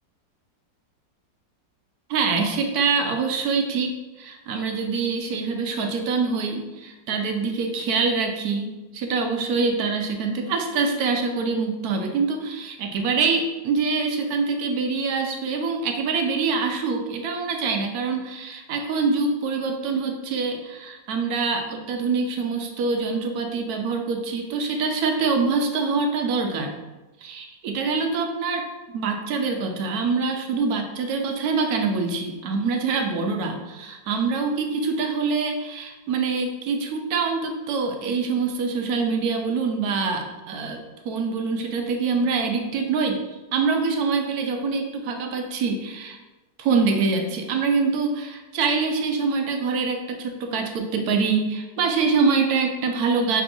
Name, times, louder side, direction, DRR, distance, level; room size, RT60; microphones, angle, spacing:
voice 1, 2.1-26.7 27.2-43.2 43.5-46.2 46.6-53.4, right 4 dB, 70° right, 3 dB, 1.0 m, -25 dB
6.0 x 3.4 x 2.6 m, 1.1 s
omnidirectional pair, 1.9 m